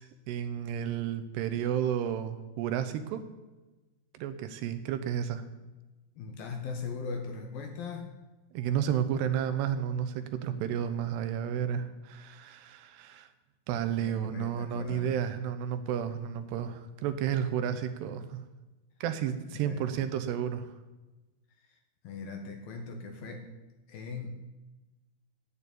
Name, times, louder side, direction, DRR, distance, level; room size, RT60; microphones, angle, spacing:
voice 1, 0.0-3.2 4.2-5.4 8.5-13.3 13.7-18.4 19.0-20.7, right 9 dB, 80° right, 9 dB, 2.8 m, -32 dB
voice 2, 6.2-8.2 13.9-15.1 19.5-20.1 22.0-23.5 23.9-24.3, left 4 dB, 70° left, 4 dB, 2.4 m, -40 dB
9.2 x 8.9 x 8.3 m, 1.1 s
omnidirectional pair, 4.9 m